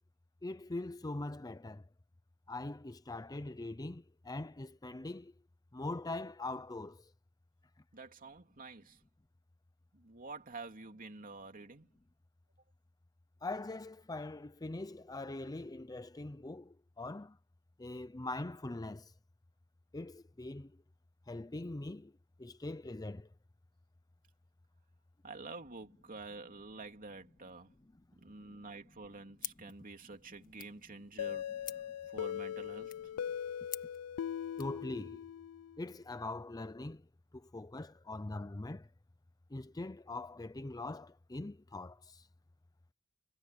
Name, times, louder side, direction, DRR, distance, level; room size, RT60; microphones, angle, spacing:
voice 1, 0.4-1.8 2.5-5.3 5.7-7.0 13.4-17.4 17.8-19.1 19.9-20.7 21.3-22.1 22.4-23.3 34.6-35.2 35.8-37.0 37.3-38.9 39.5-42.2, left 2 dB, 15° left, 0.6 m, -42 dB
voice 2, 7.9-9.0 9.9-11.9 25.2-27.7 28.2-31.4 32.1-32.9, right 3 dB, 40° right, 2.8 m, -48 dB
sound 1, 29.4-34.8, left 11 dB, 40° left, 1.8 m, -50 dB
sound 2, 31.2-35.9, left 9 dB, 90° left, 0.4 m, -40 dB
head